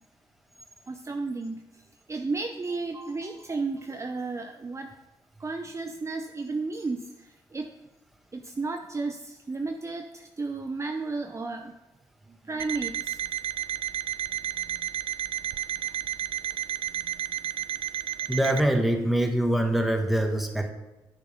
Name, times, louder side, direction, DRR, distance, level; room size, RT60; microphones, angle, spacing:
voice 1, 0.9-1.7 2.1-4.9 5.4-7.7 8.3-11.7 12.3-13.2, right 3 dB, 30° right, 5 dB, 0.7 m, -33 dB
Alarm, 12.6-18.7, right 10 dB, 65° right, 0.4 m, -32 dB
voice 2, 18.3-20.7, right 1 dB, ahead, 3 dB, 1.5 m, -24 dB
9.3 x 6.7 x 5.1 m, 1.0 s
supercardioid pair, 60°, 10 cm